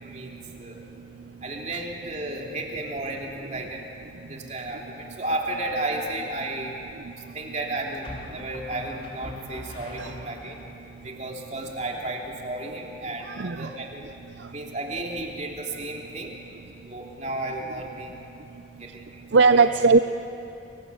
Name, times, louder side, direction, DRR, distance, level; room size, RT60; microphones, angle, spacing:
voice 1, 0.0-0.8 1.4-3.8 4.3-6.7 7.3-10.6 11.0-14.0 14.5-16.4 16.8-18.1 18.8-19.8, right 2 dB, 40° right, 0 dB, 3.0 m, -33 dB
sound 1, 5.4-5.9 8.0-10.7, left 1 dB, 30° left, 3.8 m, -42 dB
voice 2, 13.3-13.7 19.3-20.0, right 4 dB, 70° right, 10 dB, 0.6 m, -18 dB
29.5 x 22.5 x 8.4 m, 2.8 s
head